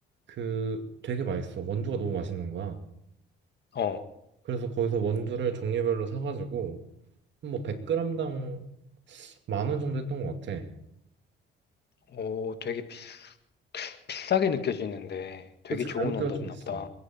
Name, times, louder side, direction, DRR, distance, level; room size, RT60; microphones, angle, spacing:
voice 1, 0.3-2.8 4.4-6.8 7.4-8.7 9.1-10.7 15.7-16.8, right 6 dB, 65° right, 6 dB, 2.4 m, -31 dB
voice 2, 12.1-13.3 13.7-16.9, left 7 dB, 55° left, 9 dB, 1.8 m, -31 dB
29.0 x 9.9 x 4.5 m, 0.78 s
supercardioid pair, 75°, 20 cm